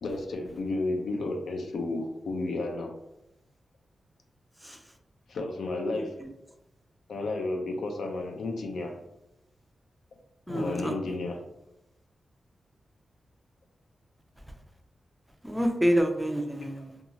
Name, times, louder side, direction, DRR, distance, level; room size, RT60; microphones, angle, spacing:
voice 1, 0.0-3.0 5.3-6.2 7.1-9.0 10.5-11.5, left 2 dB, 90° left, 3 dB, 0.4 m, -32 dB
voice 2, 5.9-6.3 10.5-11.0 15.4-17.0, equal, 5° right, 4 dB, 0.3 m, -28 dB
2.8 x 2.3 x 2.7 m, 0.88 s
wide cardioid pair, 130°, 0 cm